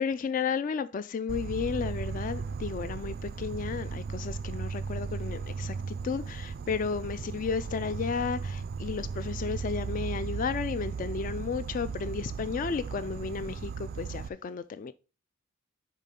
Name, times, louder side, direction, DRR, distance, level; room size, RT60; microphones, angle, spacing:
voice 1, 0.0-14.9, left 5 dB, 40° left, 0.3 m, -33 dB
Insect, 1.3-14.3, right 5 dB, 50° right, 0.3 m, -36 dB
10.0 x 4.1 x 3.7 m
head